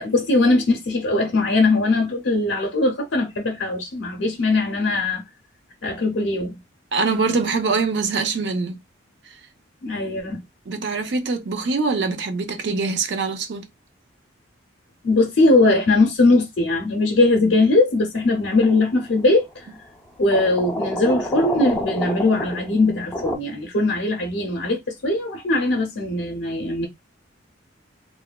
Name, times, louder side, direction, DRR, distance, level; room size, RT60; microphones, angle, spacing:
voice 1, 0.0-5.2 5.8-6.6 9.8-10.4 15.0-19.7 20.2-26.9, left 2 dB, 75° left, 0.6 m, -20 dB
voice 2, 6.9-8.8 9.3-9.4 10.7-13.7, right 4 dB, 60° right, 0.4 m, -23 dB
sound 1, 18.6-19.0 20.3-23.4, equal, 5° left, 0.4 m, -28 dB
3.0 x 2.1 x 2.2 m
head